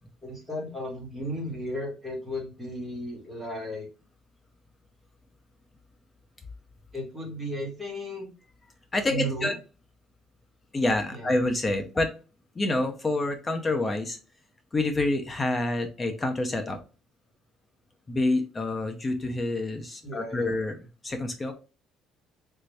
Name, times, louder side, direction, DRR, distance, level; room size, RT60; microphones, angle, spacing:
voice 1, 0.2-3.9 6.9-8.3 9.1-9.5 11.1-11.3 20.0-20.5, equal, 5° right, -3 dB, 1.6 m, -35 dB
voice 2, 8.9-9.5 10.7-12.1 12.6-14.2 14.7-16.8 18.1-20.8 21.0-21.5, left 2 dB, 20° left, 6 dB, 0.5 m, -27 dB
3.3 x 2.6 x 3.2 m, 0.33 s
cardioid pair, 140°, 0 cm